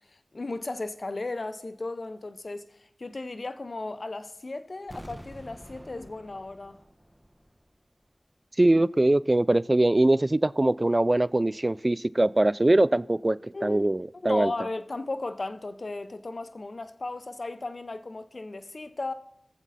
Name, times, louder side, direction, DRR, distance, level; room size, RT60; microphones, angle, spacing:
voice 1, 0.3-6.8 13.5-13.9 14.1-19.1, left 2 dB, 60° left, 0.6 m, -35 dB
sound 1, 4.9-7.8 8.0-8.1, equal, ahead, 1.3 m, -47 dB
voice 2, 8.6-14.5, right 1 dB, 35° right, 0.3 m, -22 dB
18.0 x 7.3 x 4.1 m
cardioid pair, 40°, 0 cm